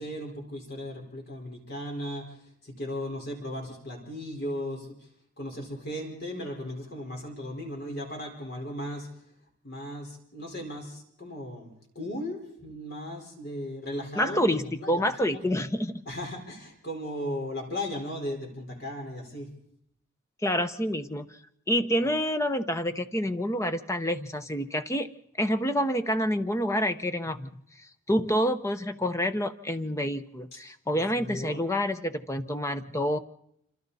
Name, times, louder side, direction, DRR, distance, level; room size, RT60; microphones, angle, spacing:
voice 1, 0.0-5.1 5.4-9.1 9.6-14.4 14.8-15.4 16.1-19.5 30.5-30.6 30.9-31.6, left 1 dB, 45° left, 1 dB, 4.4 m, -36 dB
voice 2, 14.2-16.0 20.4-21.3 21.7-25.1 25.4-27.5 27.8-33.2, equal, 15° left, 10 dB, 0.8 m, -28 dB
26.5 x 25.5 x 4.1 m, 0.74 s
head